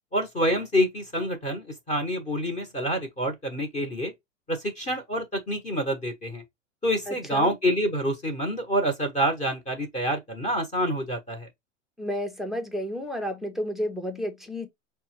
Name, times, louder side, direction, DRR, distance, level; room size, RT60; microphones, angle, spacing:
voice 1, 0.1-4.1 4.5-6.4 6.8-11.5, equal, 15° left, 0.9 m, -27 dB
voice 2, 7.1-7.6 12.0-14.7, equal, ahead, 0.4 m, -31 dB
5.2 x 2.2 x 3.0 m
hypercardioid pair, 115°, 40 cm